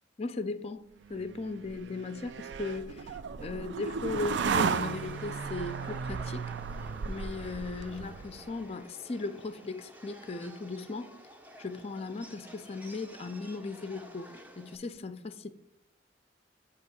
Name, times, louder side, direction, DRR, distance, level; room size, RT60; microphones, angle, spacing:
voice 1, 0.2-0.8 1.1-6.5 7.1-11.1 11.6-14.3 14.6-15.5, left 3 dB, 35° left, 0.4 m, -37 dB
sound 1, 1.1-8.5, right 6 dB, 75° right, 0.3 m, -35 dB
Subway metro underground, 4.2-14.8, equal, 10° right, 0.6 m, -51 dB
8.3 x 2.9 x 6.2 m
head